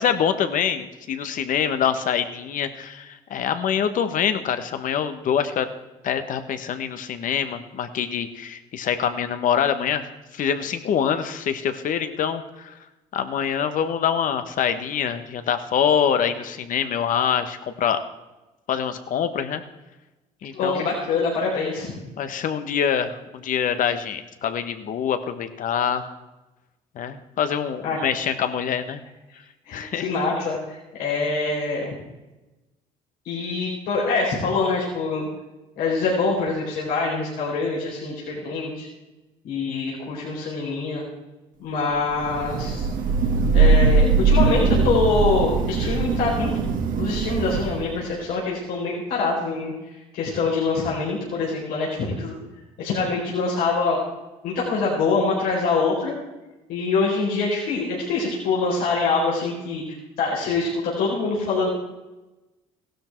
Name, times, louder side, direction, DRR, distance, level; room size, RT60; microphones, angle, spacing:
voice 1, 0.0-5.7 6.0-10.0 10.3-12.7 13.1-18.0 18.7-19.6 20.4-20.9 22.2-26.1 26.9-29.0 29.7-30.1, left 8 dB, 60° left, 9 dB, 1.5 m, -25 dB
voice 2, 20.5-21.9 27.8-28.0 29.7-31.9 33.2-35.3 35.8-38.9 39.4-41.0 41.6-42.9 43.5-46.5 47.0-52.3 52.8-54.0 54.4-56.1 56.7-60.7 61.0-61.7, left 4 dB, 80° left, -5 dB, 4.6 m, -25 dB
Thunder / Rain, 42.2-48.0, right 4 dB, 65° right, 2.0 m, -20 dB
16.5 x 12.5 x 4.6 m, 1.1 s
supercardioid pair, 70°, 15 cm